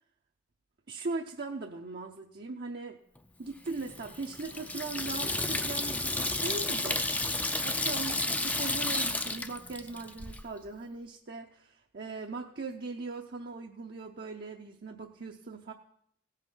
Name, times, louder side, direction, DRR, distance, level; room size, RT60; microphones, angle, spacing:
voice 1, 0.9-3.0 3.4-7.0 7.3-15.7, right 3 dB, 55° right, 1 dB, 0.7 m, -39 dB
Water tap faucet / Sink (filling or washing), 3.7-10.4, left 2 dB, 10° left, 0.4 m, -32 dB
17.0 x 5.7 x 5.5 m, 0.70 s
head